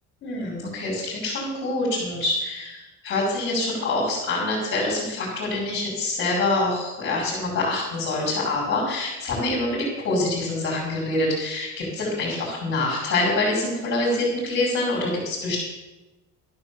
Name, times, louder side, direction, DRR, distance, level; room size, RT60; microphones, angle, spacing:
voice 1, 0.2-15.6, left 2 dB, 35° left, -7 dB, 5.0 m, -25 dB
13.5 x 9.6 x 7.1 m, 1.1 s
cardioid pair, 175°, 34 cm